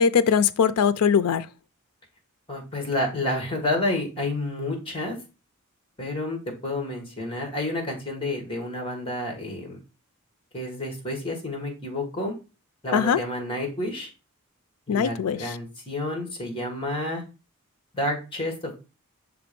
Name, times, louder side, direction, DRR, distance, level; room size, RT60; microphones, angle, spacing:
voice 1, 0.0-1.5 12.9-13.2 14.9-15.5, left 7 dB, 85° left, 0.4 m, -21 dB
voice 2, 2.5-5.2 6.0-9.8 10.5-12.3 12.8-14.1 14.9-17.2 17.9-18.8, left 1 dB, 25° left, 1.6 m, -30 dB
6.1 x 3.0 x 5.1 m
head